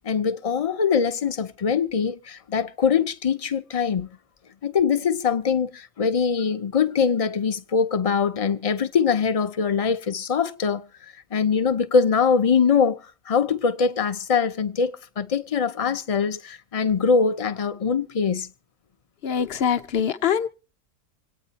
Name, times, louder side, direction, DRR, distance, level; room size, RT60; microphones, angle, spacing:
voice 1, 0.0-4.2 4.6-10.8 11.3-13.0 13.3-18.5, left 6 dB, 35° left, 0.7 m, -23 dB
voice 2, 19.2-20.5, left 8 dB, 55° left, 1.0 m, -23 dB
26.0 x 9.1 x 4.1 m
omnidirectional pair, 1.3 m